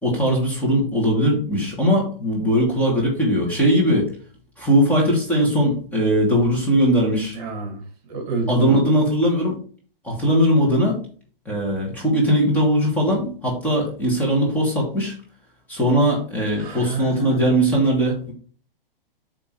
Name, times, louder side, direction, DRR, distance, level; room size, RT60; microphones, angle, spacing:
voice 1, 0.0-4.1 4.6-7.4 8.5-9.6 10.0-11.0 11.5-15.2 15.7-18.3, equal, 5° left, -3 dB, 2.1 m, -20 dB
voice 2, 7.3-8.8 16.6-17.7, right 4 dB, 45° right, 4 dB, 2.3 m, -29 dB
8.5 x 3.5 x 4.7 m, 0.42 s
hypercardioid pair, 150°, 29 cm